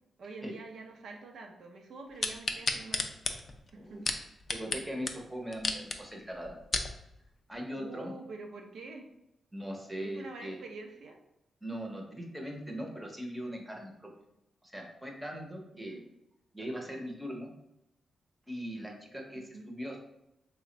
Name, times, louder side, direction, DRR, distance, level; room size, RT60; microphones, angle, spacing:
voice 1, 0.2-3.1 3.7-4.1 7.8-9.1 10.0-11.2 15.7-16.0 19.3-19.7, right 3 dB, 70° right, 2 dB, 0.5 m, -46 dB
sound 1, 2.2-4.8 5.1-5.2 5.5-6.0 6.5-6.9 7.5-7.6, left 3 dB, 40° left, 0.4 m, -32 dB
voice 2, 3.7-4.2 4.5-6.6 7.5-8.1 9.5-10.6 11.6-14.1 14.6-16.0 16.5-17.5 18.5-20.0, equal, 5° right, 0 dB, 0.6 m, -40 dB
3.3 x 2.1 x 3.8 m, 0.85 s
cardioid pair, 110°, 0 cm